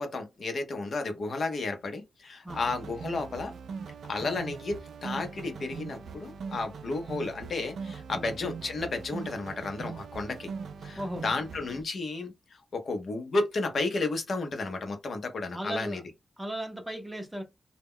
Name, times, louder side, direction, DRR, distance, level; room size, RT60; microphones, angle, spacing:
voice 1, 0.0-3.5 4.1-10.5 10.8-12.3 12.7-16.0, left 3 dB, 55° left, 0.6 m, -32 dB
sound 1, 2.5-11.8, right 5 dB, 90° right, 0.3 m, -41 dB
voice 2, 15.5-16.0 16.4-17.4, right 1 dB, 10° right, 0.6 m, -36 dB
2.1 x 2.1 x 3.6 m
wide cardioid pair, 145°, 0 cm